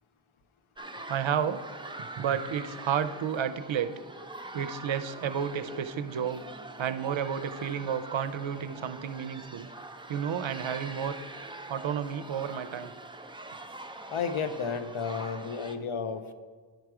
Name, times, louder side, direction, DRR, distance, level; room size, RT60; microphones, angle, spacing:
sound 1, 0.8-15.8, right 2 dB, 10° right, 0.5 m, -44 dB
voice 1, 1.1-1.6 2.2-3.9 4.5-6.4 6.8-9.7 10.1-11.2 11.7-12.9, right 8 dB, 70° right, 11 dB, 0.5 m, -31 dB
voice 2, 14.1-16.3, left 6 dB, 75° left, 9 dB, 0.7 m, -32 dB
10.5 x 4.6 x 4.8 m, 1.5 s
wide cardioid pair, 55°, 48 cm